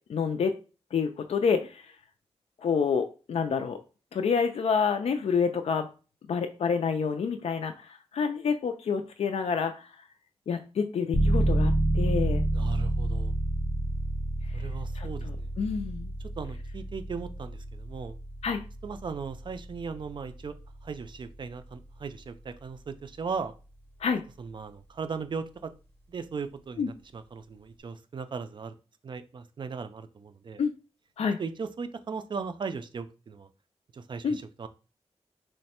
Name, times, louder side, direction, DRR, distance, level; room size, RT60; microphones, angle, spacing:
voice 1, 0.1-0.5 0.9-1.9 2.6-3.8 4.1-5.9 6.3-9.9 10.5-12.4 14.5-14.6 14.9-16.1 18.4-18.6 24.0-24.2 26.8-26.9 30.6-30.7 31.2-31.4 34.2-34.4, left 6 dB, 75° left, 7 dB, 0.4 m, -28 dB
sound 1, 11.1-21.7, right 2 dB, 15° left, 0.7 m, -29 dB
voice 2, 12.5-13.3 14.5-15.5 16.4-18.1 18.8-20.5 20.8-23.5 24.4-25.7 26.1-28.7 29.0-30.6 31.4-33.5 33.9-34.7, right 5 dB, 45° right, 10 dB, 0.3 m, -37 dB
3.1 x 2.1 x 4.2 m, 0.34 s
wide cardioid pair, 170°, 11 cm